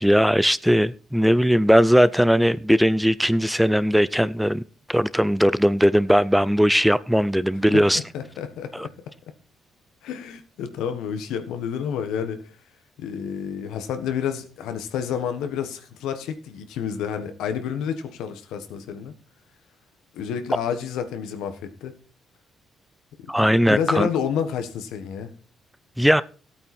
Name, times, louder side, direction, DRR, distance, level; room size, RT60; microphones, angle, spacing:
voice 1, 0.0-4.6 4.9-8.0 8.7-8.9 23.3-24.1 26.0-26.2, equal, ahead, 0.4 m, -19 dB
voice 2, 7.7-8.9 10.0-12.4 13.0-19.1 20.1-21.9 23.2-23.3 23.7-25.3, left 8 dB, 90° left, 1.3 m, -29 dB
14.5 x 8.8 x 4.3 m
cardioid pair, 90°, 0 cm